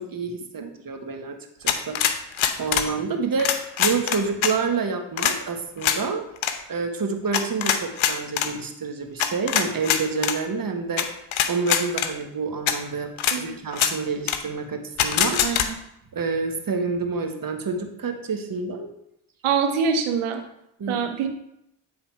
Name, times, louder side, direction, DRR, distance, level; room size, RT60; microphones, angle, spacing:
voice 1, 0.0-2.3 2.6-6.3 6.7-11.1 11.5-13.1 13.4-15.4 16.1-18.9 20.8-21.0, right 4 dB, 45° right, 5 dB, 1.4 m, -28 dB
sound 1, 1.7-2.9 3.4-4.5 5.2-5.4 5.8-6.0 6.4-6.5 7.3-8.5 9.2-10.4 11.0-11.1 11.3-12.1 12.7-12.8 13.2-13.4 13.7-13.9 14.3-14.4 15.0-15.7, left 9 dB, 70° left, 0.8 m, -23 dB
voice 2, 15.4-15.7 19.4-20.4 20.9-21.3, right 6 dB, 85° right, 6 dB, 1.0 m, -24 dB
9.1 x 3.9 x 4.5 m, 0.80 s
supercardioid pair, 55°, 49 cm